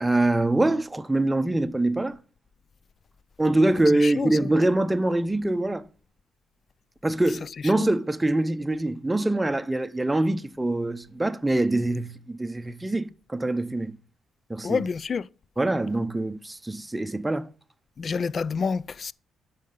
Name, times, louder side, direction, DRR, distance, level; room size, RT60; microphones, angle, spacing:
voice 1, 0.0-2.2 3.4-5.8 7.0-14.0 14.5-14.9 15.6-17.5, right 2 dB, 10° right, 0.7 m, -24 dB
voice 2, 14.6-15.2 18.0-19.1, left 5 dB, 45° left, 0.4 m, -27 dB
9.1 x 6.5 x 3.9 m
cardioid pair, 90°, 0 cm